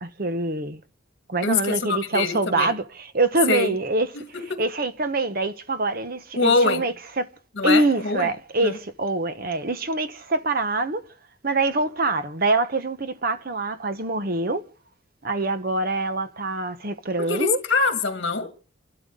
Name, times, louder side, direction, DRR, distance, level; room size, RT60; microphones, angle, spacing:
voice 1, 0.0-0.8 1.3-4.1 4.6-7.3 7.6-11.0 11.4-14.6 15.2-17.6, right 2 dB, 50° right, 1.0 m, -25 dB
voice 2, 1.4-2.7 3.5-3.7 4.3-4.6 6.4-6.9 7.6-8.3 8.6-8.8 17.2-18.5, left 4 dB, 60° left, 1.8 m, -23 dB
29.0 x 12.5 x 3.8 m
head